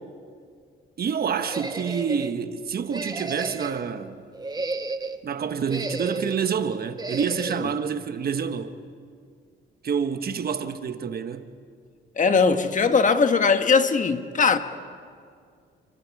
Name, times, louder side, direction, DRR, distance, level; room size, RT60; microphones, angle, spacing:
voice 1, 1.0-4.2 5.2-8.7 9.8-11.5, right 6 dB, 50° right, 1.3 m, -28 dB
sound 1, 1.4-2.3 2.9-3.9 4.3-5.2 5.7-6.4 7.0-7.7, right 3 dB, 20° right, 1.1 m, -32 dB
voice 2, 12.2-14.6, left 5 dB, 40° left, 1.4 m, -20 dB
30.0 x 25.0 x 4.8 m
cardioid pair, 90°, 20 cm